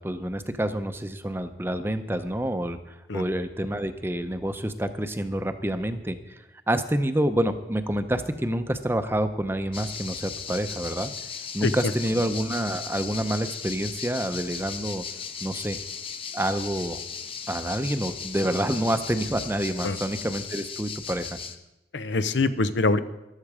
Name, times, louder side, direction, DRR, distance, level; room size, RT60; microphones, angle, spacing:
voice 1, 0.0-2.8 3.1-6.2 6.7-11.1 11.5-15.1 15.4-15.8 16.3-17.0 17.5-21.4, right 1 dB, 15° right, 9 dB, 0.7 m, -28 dB
sound 1, 9.7-21.6, left 6 dB, 30° left, 0.8 m, -37 dB
voice 2, 11.6-11.9 19.8-20.0 21.9-23.0, left 3 dB, 90° left, 12 dB, 0.8 m, -24 dB
14.0 x 12.0 x 4.9 m, 0.95 s
head